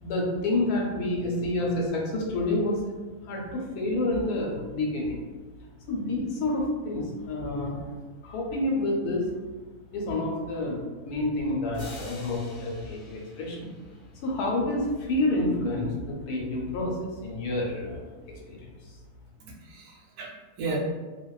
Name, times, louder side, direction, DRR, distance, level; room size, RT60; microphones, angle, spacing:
voice 1, 0.0-2.8 3.2-5.2 5.9-7.9 8.2-9.3 9.9-13.7 14.2-18.1 18.5-18.6, left 2 dB, 85° left, -2 dB, 1.1 m, -28 dB
sound 1, 11.7-14.4, left 2 dB, 65° left, 0.5 m, -47 dB
voice 2, 19.4-20.8, right 3 dB, 80° right, -2 dB, 1.1 m, -35 dB
2.6 x 2.2 x 2.3 m, 1.3 s
omnidirectional pair, 1.6 m